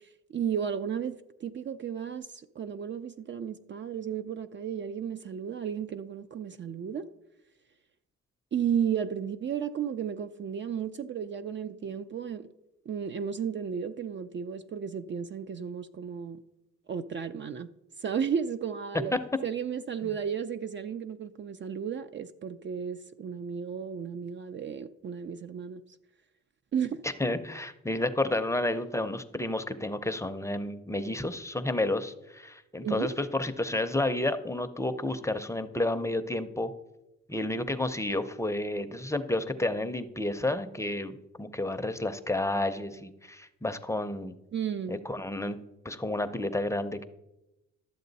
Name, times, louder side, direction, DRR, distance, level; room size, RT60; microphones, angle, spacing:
voice 1, 0.3-7.1 8.5-12.5 12.9-16.4 16.9-17.7 18.0-19.1 19.4-25.8 26.7-27.0 32.8-33.1 44.5-45.0, right 7 dB, 40° right, 0.4 m, -33 dB
voice 2, 27.0-36.7 37.3-44.3 44.9-45.6 45.8-47.0, left 1 dB, 10° left, 0.6 m, -31 dB
12.5 x 7.5 x 4.0 m
cardioid pair, 90°, 30 cm